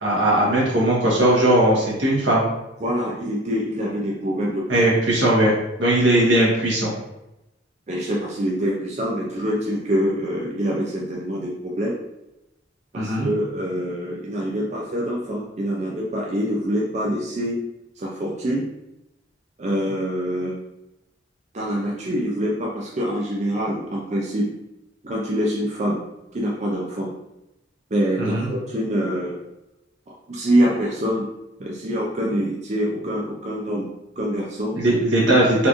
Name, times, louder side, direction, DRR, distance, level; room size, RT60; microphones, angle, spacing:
voice 1, 0.0-2.4 4.7-5.5 5.8-6.9 12.9-13.3 28.2-28.5 34.8-35.7, right 1 dB, 80° right, -4 dB, 1.4 m, -18 dB
voice 2, 2.8-4.9 5.2-5.5 7.9-12.0 12.9-17.6 18.0-18.7 19.6-20.6 21.5-24.4 25.0-26.0 26.3-27.1 27.9-29.4 30.3-31.3 31.6-33.9 34.2-34.8, equal, 40° right, -3 dB, 0.5 m, -25 dB
4.2 x 2.5 x 3.0 m, 0.91 s
head